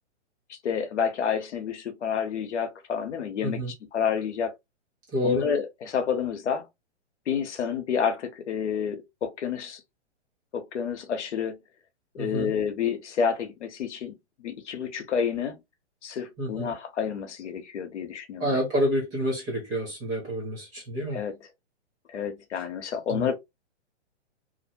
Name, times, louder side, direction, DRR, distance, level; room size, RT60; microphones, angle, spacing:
voice 1, 0.5-3.6 3.9-4.5 5.2-6.7 7.3-9.8 10.5-11.6 12.1-14.1 14.4-15.6 16.0-18.6 21.1-21.3 22.1-23.3, left 7 dB, 80° left, 0.8 m, -29 dB
voice 2, 5.1-5.5 12.2-12.5 16.4-16.7 18.4-21.2 23.1-23.3, equal, 10° right, 0.4 m, -28 dB
2.5 x 2.1 x 2.5 m
hypercardioid pair, 150°, 35 cm